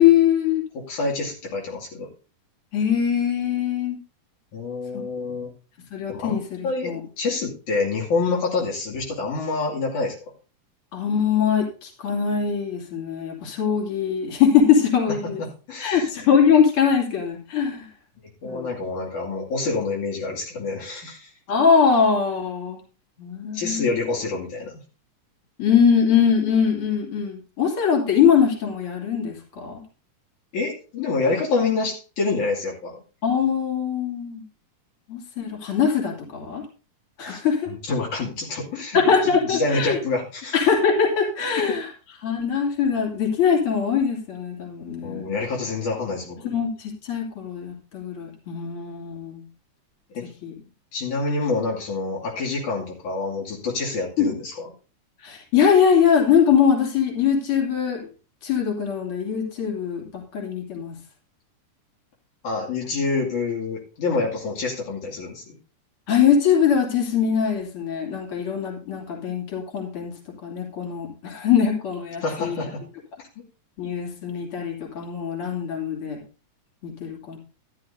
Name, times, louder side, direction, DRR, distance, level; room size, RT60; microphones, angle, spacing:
voice 1, 0.0-0.6 2.7-4.0 4.9-5.0 5.9-7.0 10.9-15.4 15.8-17.9 18.4-18.7 21.5-22.8 23.2-23.9 25.6-29.8 33.2-34.4 35.1-36.6 37.2-37.7 38.9-40.0 40.5-41.9 42.2-45.3 46.4-49.4 50.4-50.5 54.2-54.3 55.2-58.0 58.4-60.9 66.1-70.1 70.4-72.6 73.8-76.2 76.8-77.4, left 7 dB, 45° left, -1 dB, 3.6 m, -22 dB
voice 2, 0.7-2.1 4.5-5.5 6.1-6.9 7.2-10.2 15.1-16.1 18.4-21.3 23.5-24.8 30.5-33.0 37.2-40.6 41.7-41.8 45.0-46.4 50.1-50.3 50.9-54.7 62.4-65.6 72.2-72.8, left 3 dB, 65° left, -3 dB, 3.9 m, -27 dB
13.0 x 12.5 x 2.7 m, 0.34 s
omnidirectional pair, 3.8 m